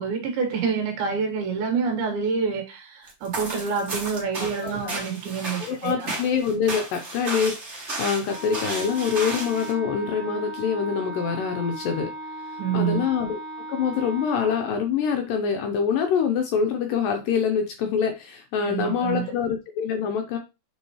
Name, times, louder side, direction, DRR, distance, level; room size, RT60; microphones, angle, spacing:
voice 1, 0.0-6.1 12.6-13.1 18.6-19.3, right 5 dB, 75° right, 3.4 m, -27 dB
sound 1, 3.1-9.7, right 2 dB, 60° right, 0.7 m, -33 dB
voice 2, 4.4-5.0 5.6-12.1 12.5-13.4 13.7-20.4, left 6 dB, 80° left, 2.1 m, -25 dB
Wind instrument woodwind instrument, 8.2-14.6, right 1 dB, 40° right, 1.7 m, -37 dB
8.4 x 3.7 x 3.0 m
omnidirectional pair, 4.5 m